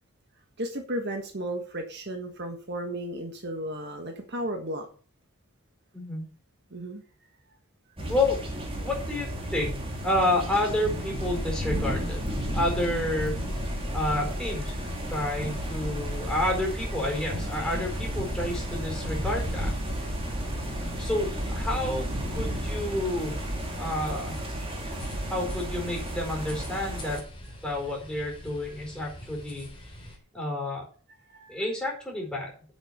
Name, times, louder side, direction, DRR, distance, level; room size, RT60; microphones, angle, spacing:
voice 1, 0.6-4.9 6.7-7.0 31.3-31.7, right 1 dB, 50° right, 4 dB, 1.5 m, -34 dB
voice 2, 5.9-6.3 8.1-8.4 8.8-9.8 10.0-12.2 12.5-13.4 13.9-14.7 15.1-19.7 21.0-23.3 23.8-24.4 25.3-27.2 27.6-29.7 30.3-30.8 31.5-32.5, left 1 dB, 5° left, -1 dB, 4.6 m, -29 dB
sound 1, 8.0-27.2, right 1 dB, 25° right, 2.3 m, -33 dB
sound 2, 11.1-30.2, left 1 dB, 25° left, 3.2 m, -38 dB
8.0 x 8.0 x 5.8 m, 0.42 s
head